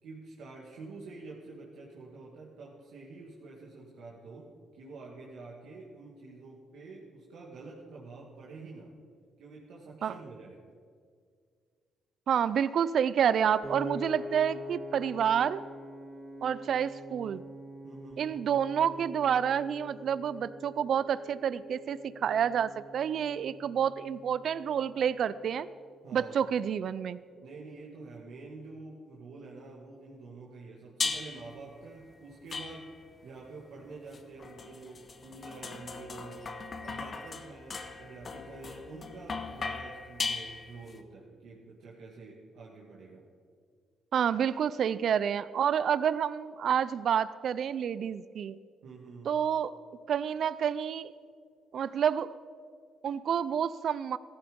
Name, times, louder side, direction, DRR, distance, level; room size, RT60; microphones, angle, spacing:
voice 1, 0.0-8.9 9.4-10.6 17.8-18.4 26.0-26.5 27.4-32.9 33.2-36.5 36.8-43.3 48.8-49.4, right 3 dB, 80° right, -4 dB, 2.2 m, -47 dB
voice 2, 12.3-15.6 16.4-17.4 18.2-25.7 26.1-27.2 44.1-48.6 49.3-49.7 50.1-51.1 51.7-52.3 53.0-54.2, right 8 dB, 60° right, 17 dB, 0.4 m, -29 dB
Piano, 13.6-25.9, left 1 dB, 30° right, 1.9 m, -45 dB
sound 1, 31.0-31.6 32.5-33.2 34.1-41.0, left 4 dB, 40° left, 1.1 m, -38 dB
15.0 x 13.5 x 5.3 m, 2.1 s
cardioid pair, 90°, 0 cm